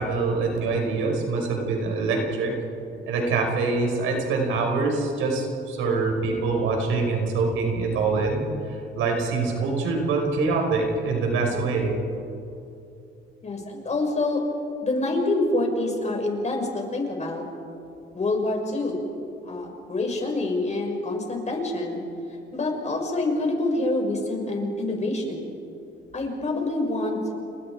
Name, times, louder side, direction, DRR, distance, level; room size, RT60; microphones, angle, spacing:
voice 1, 0.0-2.5 3.1-11.9, right 3 dB, 90° right, 1 dB, 5.6 m, -25 dB
voice 2, 13.4-14.4 14.8-17.5 18.1-19.1 19.4-22.0 22.5-25.5 26.1-27.3, left 2 dB, 35° left, 1 dB, 6.2 m, -26 dB
29.5 x 29.5 x 5.0 m, 2.6 s
cardioid pair, 90°, 20 cm